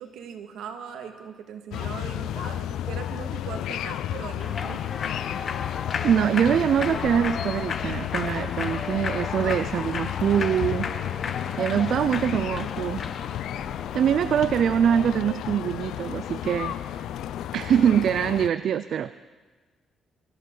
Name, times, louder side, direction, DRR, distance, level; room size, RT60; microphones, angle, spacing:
voice 1, 0.0-4.9 11.6-12.3 12.6-13.1, right 7 dB, 85° right, 4 dB, 1.9 m, -40 dB
sound 1, 1.7-18.5, left 11 dB, 80° left, 0.5 m, -32 dB
Thunder / Rain, 4.0-18.1, left 2 dB, 5° left, 5.0 m, -48 dB
Human voice / Clapping / Cheering, 4.4-14.1, left 6 dB, 50° left, 0.9 m, -34 dB
voice 2, 6.0-10.9 11.6-13.0 13.9-17.1 17.5-19.1, right 9 dB, 65° right, 13 dB, 0.4 m, -24 dB
24.5 x 14.5 x 3.9 m, 1.4 s
cardioid pair, 90°, 0 cm